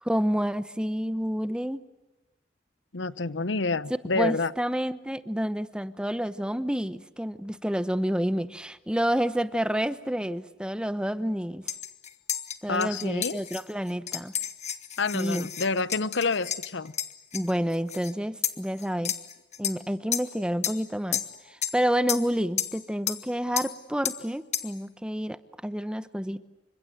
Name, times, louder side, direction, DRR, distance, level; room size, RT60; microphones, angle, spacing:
voice 1, 0.0-1.8 4.1-11.6 12.6-14.3 15.1-15.5 17.3-19.1 19.6-21.2 21.5-26.5, equal, 5° right, 14 dB, 0.9 m, -29 dB
voice 2, 2.9-4.5 12.7-13.4 15.0-16.9, left 3 dB, 80° left, 18 dB, 0.9 m, -28 dB
sound 1, 11.7-18.1 18.4-19.8 20.1-20.4 20.6-20.8 21.1-21.8 22.1-22.3 22.6-22.8 23.1-23.2 23.6-23.7 24.1-24.2 24.5-24.7, left 10 dB, 40° left, 1.7 m, -32 dB
29.0 x 25.5 x 7.8 m, 1.0 s
head